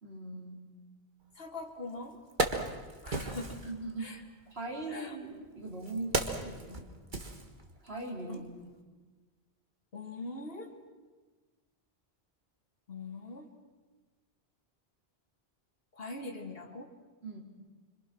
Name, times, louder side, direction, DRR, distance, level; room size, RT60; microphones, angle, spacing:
voice 1, 0.0-0.6 3.6-4.2 4.5-6.8 7.8-8.5 17.2-17.4, right 2 dB, 75° right, -2 dB, 4.6 m, -40 dB
voice 2, 1.4-2.2 3.0-3.6 4.0-4.2 4.9-5.2 8.3-8.4 9.9-10.7 12.9-13.5 16.0-16.9, left 2 dB, 65° left, 3 dB, 2.5 m, -42 dB
Wood, 1.6-1.7 2.1-3.7 4.7-8.0 8.3-8.5, right 2 dB, 50° right, 1.9 m, -35 dB
26.0 x 26.0 x 6.3 m, 1.3 s
omnidirectional pair, 1.1 m